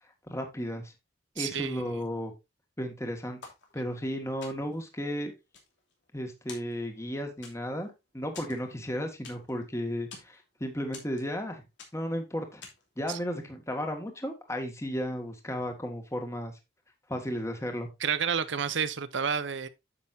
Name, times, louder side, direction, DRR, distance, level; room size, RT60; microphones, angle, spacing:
voice 1, 0.3-0.9 1.4-2.3 2.8-3.4 3.7-5.3 6.1-11.6 11.9-12.6 13.0-16.5 17.1-17.9, equal, 15° left, 1.8 m, -34 dB
voice 2, 1.4-2.0 13.1-13.2 18.0-19.7, right 7 dB, 80° right, 0.7 m, -30 dB
sound 1, 3.4-4.1 4.4-4.9 5.3-6.2 6.5-7.1 7.4-7.9 8.3-9.6 9.9-10.4 10.9-11.5 11.8-12.2 12.6-13.0, left 5 dB, 75° left, 2.9 m, -48 dB
9.7 x 7.6 x 2.7 m
head